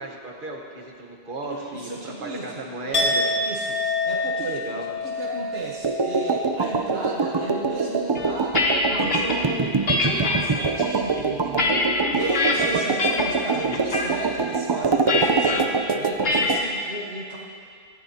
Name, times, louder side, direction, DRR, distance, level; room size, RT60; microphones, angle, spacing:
voice 1, 0.0-3.3 4.4-4.9, right 2 dB, 55° right, 0 dB, 1.5 m, -35 dB
voice 2, 1.5-3.1 3.4-8.6 8.9-17.4, right 2 dB, 70° right, -3 dB, 1.3 m, -35 dB
Chink clink, 2.9-8.9 9.2-9.6, left 2 dB, 35° left, 2.4 m, -29 dB
sound 1, 5.8-16.6, right 4 dB, 35° right, 0.4 m, -25 dB
sound 2, 8.1-9.4 9.9-10.4 11.0-12.5 13.0-13.4 13.7-14.1 15.1-15.6 16.2-16.6, left 3 dB, 70° left, 1.5 m, -24 dB
17.0 x 14.0 x 2.9 m, 2.3 s
omnidirectional pair, 1.1 m